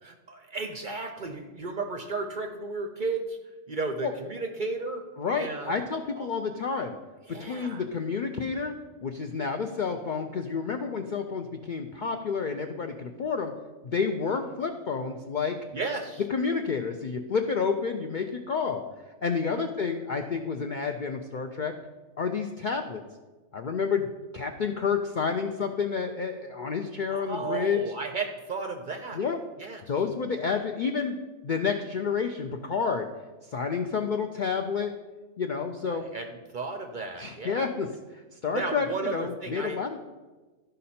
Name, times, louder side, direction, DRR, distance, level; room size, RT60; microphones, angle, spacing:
voice 1, 0.0-3.4 3.7-5.0 5.3-5.8 6.1-6.3 7.3-7.8 15.7-16.2 19.5-19.7 27.1-29.2 29.6-29.8 35.9-37.7 38.5-39.8, right 3 dB, 50° right, 5 dB, 0.6 m, -34 dB
voice 2, 5.2-7.0 7.4-8.7 9.0-13.5 13.8-15.6 16.3-18.8 19.2-21.7 22.2-23.0 23.5-24.1 24.3-27.8 29.1-29.4 29.9-31.2 31.4-33.1 33.5-34.9 35.4-36.0 37.2-37.9 38.4-40.0, left 5 dB, 65° left, 5 dB, 0.5 m, -29 dB
13.0 x 5.3 x 4.2 m, 1.3 s
omnidirectional pair, 1.4 m